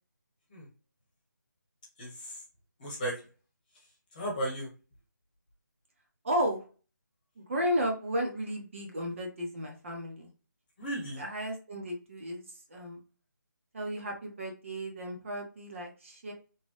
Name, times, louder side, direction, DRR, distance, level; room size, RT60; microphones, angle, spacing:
voice 1, 2.0-2.4 2.8-3.2 4.1-4.7 10.8-11.2, right 1 dB, 25° left, -3 dB, 1.2 m, -35 dB
voice 2, 6.2-6.6 7.4-10.3 11.2-12.4 12.7-13.0 13.7-16.3, equal, 40° right, 1 dB, 0.7 m, -33 dB
3.0 x 2.2 x 3.0 m, 0.35 s
figure-of-eight pair, 165°, 10 cm